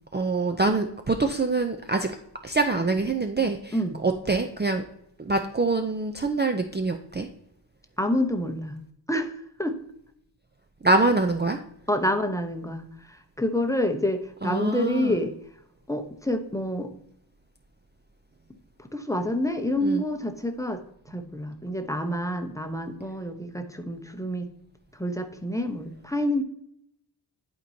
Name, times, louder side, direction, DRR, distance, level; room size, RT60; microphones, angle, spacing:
voice 1, 0.1-2.2 2.4-3.7 4.0-4.8 5.2-7.3 10.8-11.6 14.4-15.1 19.8-20.0, right 3 dB, 25° right, 5 dB, 0.5 m, -25 dB
voice 2, 8.0-8.8 9.1-9.8 11.9-15.3 15.9-16.9 18.8-24.5 24.9-26.4, left 1 dB, 5° left, 6 dB, 0.8 m, -28 dB
11.0 x 4.5 x 2.7 m, 0.72 s
wide cardioid pair, 80°, 44 cm